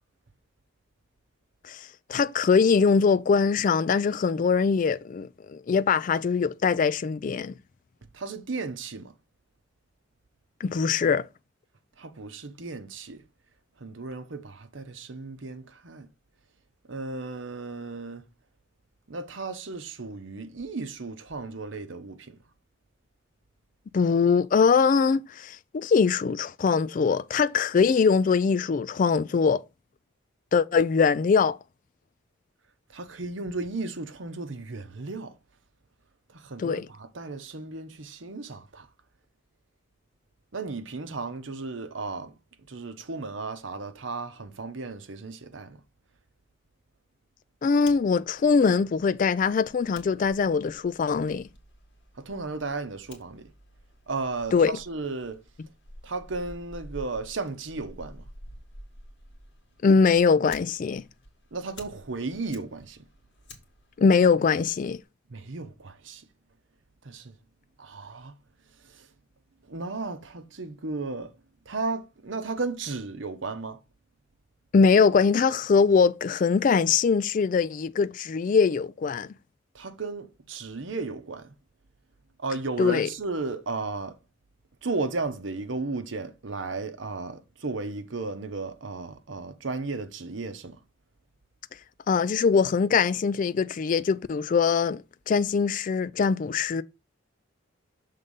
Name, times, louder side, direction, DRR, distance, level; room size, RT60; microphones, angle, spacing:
voice 1, 1.6-7.6 10.6-11.3 23.9-29.6 30.5-31.6 36.6-36.9 47.6-51.5 54.5-54.8 59.8-61.1 64.0-65.0 74.7-79.3 82.8-83.1 92.1-96.8, left 5 dB, 40° left, 0.3 m, -22 dB
voice 2, 8.1-9.1 12.0-13.2 13.8-16.1 16.9-18.2 19.1-22.4 32.9-35.3 36.3-38.9 40.5-42.3 42.7-45.8 52.2-53.5 54.1-55.4 56.0-58.2 61.5-63.0 65.3-66.2 67.0-67.3 67.8-68.3 68.9-69.1 69.7-71.3 71.7-73.8 79.7-81.5 82.4-84.2 84.8-90.8, right 3 dB, 75° right, 0.9 m, -34 dB
Fire, 47.7-65.0, left 1 dB, 60° left, 2.0 m, -50 dB
6.7 x 3.7 x 5.4 m
head